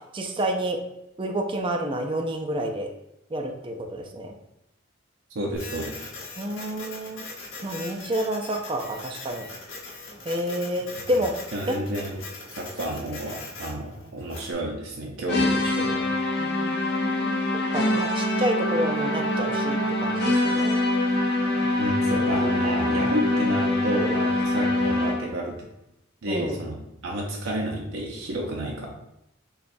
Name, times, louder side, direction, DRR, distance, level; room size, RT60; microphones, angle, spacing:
voice 1, 0.1-0.8 1.2-2.9 3.3-4.3 6.4-7.2 7.6-9.5 10.3-11.3 11.7-11.8 16.4-17.4 17.7-20.8 26.3-26.6, right 1 dB, 25° right, 3 dB, 0.4 m, -29 dB
voice 2, 5.3-6.0 11.1-12.2 12.6-16.0 21.8-25.7 26.2-26.8 27.0-28.9, right 1 dB, 80° right, -1 dB, 0.6 m, -31 dB
Printer, 5.5-14.5, left 3 dB, 75° left, 1.1 m, -41 dB
sound 1, 15.3-25.4, left 1 dB, 55° left, 0.8 m, -24 dB
6.8 x 2.3 x 2.6 m, 0.83 s
head